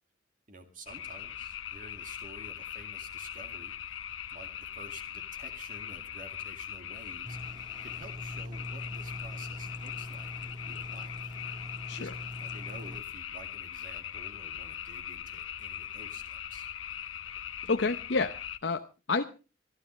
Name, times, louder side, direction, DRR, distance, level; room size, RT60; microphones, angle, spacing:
voice 1, 0.5-4.1 4.3-11.3 11.9-16.7, right 2 dB, 40° right, 5 dB, 2.2 m, -51 dB
sound 1, 0.9-18.6, left 10 dB, 85° left, 0.9 m, -41 dB
sound 2, 7.2-13.0, left 1 dB, 20° right, 1.8 m, -42 dB
voice 2, 17.7-19.2, left 3 dB, 60° left, 7 dB, 0.7 m, -30 dB
25.0 x 12.5 x 3.2 m, 0.32 s
head